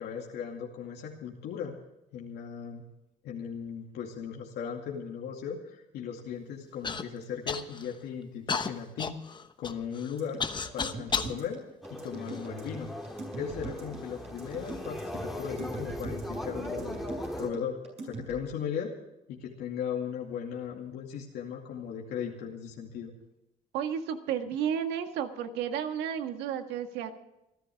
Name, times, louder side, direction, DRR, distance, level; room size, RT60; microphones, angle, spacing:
voice 1, 0.0-1.7 2.1-2.9 3.2-9.2 9.6-10.4 10.7-11.6 11.9-12.9 13.4-18.9 19.3-23.1, left 7 dB, 75° left, -1 dB, 2.4 m, -37 dB
Human voice / Cough, 6.8-7.0 7.5-8.0 8.5-11.4 12.1-12.9 13.6-13.7 14.4-14.8, left 5 dB, 25° left, 1.0 m, -34 dB
sound 1, 10.2-18.4, right 3 dB, 40° right, 6.3 m, -42 dB
sound 2, 11.8-17.5, equal, ahead, 2.8 m, -38 dB
voice 2, 23.7-27.2, right 8 dB, 90° right, 6 dB, 1.8 m, -32 dB
28.0 x 11.5 x 3.6 m, 0.90 s
cardioid pair, 110°, 17 cm